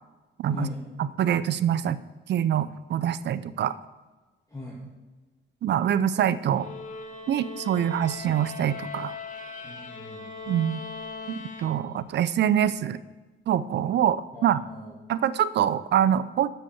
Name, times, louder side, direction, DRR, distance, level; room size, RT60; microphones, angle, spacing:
voice 1, 0.5-0.8 4.5-4.8 9.6-10.3 14.3-14.9, left 3 dB, 15° left, -5 dB, 2.6 m, -38 dB
voice 2, 1.2-2.0 2.3-3.8 5.6-6.7 7.3-9.2 10.5-10.8 11.3-13.0 13.5-14.6 15.1-16.5, right 10 dB, 60° right, 16 dB, 0.5 m, -25 dB
sound 1, 6.5-12.2, left 4 dB, 40° left, 1.5 m, -40 dB
12.5 x 5.6 x 7.2 m, 1.2 s
cardioid pair, 90°, 20 cm